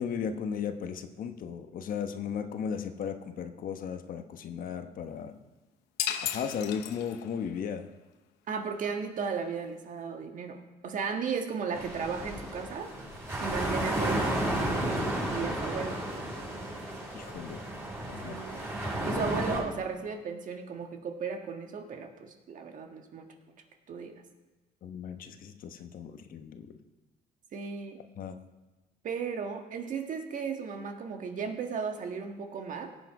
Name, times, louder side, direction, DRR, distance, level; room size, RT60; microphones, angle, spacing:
voice 1, 0.0-5.3 6.2-7.9 17.1-17.6 18.1-18.4 24.8-26.7 28.2-28.4, left 7 dB, 55° left, 7 dB, 1.1 m, -36 dB
sound 1, 6.0-7.5, left 11 dB, 90° left, 0.9 m, -34 dB
voice 2, 8.5-12.9 13.4-16.0 18.2-18.7 19.0-23.3 23.9-24.2 27.5-28.0 29.0-32.9, right 5 dB, 50° right, 5 dB, 1.6 m, -35 dB
sound 2, 11.7-19.6, right 1 dB, 15° right, 4.8 m, -33 dB
17.5 x 7.6 x 4.8 m, 1.1 s
cardioid pair, 110°, 17 cm